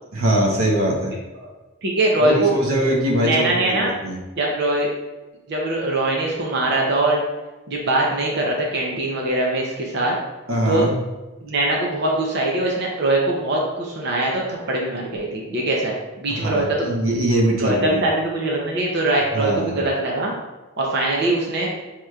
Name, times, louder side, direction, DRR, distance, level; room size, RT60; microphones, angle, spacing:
voice 1, 0.1-1.2 2.2-4.2 10.5-11.0 16.3-18.0 19.3-19.8, right 1 dB, 90° right, -1 dB, 0.9 m, -22 dB
voice 2, 1.8-2.5 3.2-3.9 4.4-4.9 5.5-7.2 7.7-10.1 10.7-10.9 11.4-16.9 17.6-20.3 20.8-21.7, right 2 dB, 55° right, -2 dB, 0.6 m, -22 dB
6.3 x 2.9 x 2.3 m, 1.1 s
head